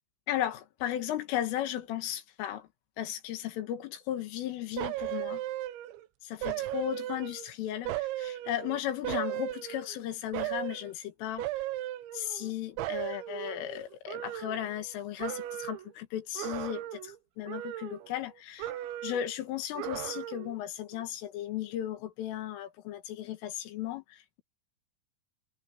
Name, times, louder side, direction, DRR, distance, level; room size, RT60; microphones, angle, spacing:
voice 1, 0.3-2.7 3.0-5.4 6.2-11.4 12.1-18.7 19.0-24.4, left 11 dB, 85° left, 4.5 m, -35 dB
sound 1, 4.8-6.0 6.4-7.5 7.9-10.0 10.3-10.9 11.4-12.5 12.8-14.9 15.2-15.9 16.3-17.2 17.5-18.3 18.6-19.3 19.7-20.6 20.9-21.0, right 14 dB, 80° right, 3.0 m, -36 dB
omnidirectional pair, 5.7 m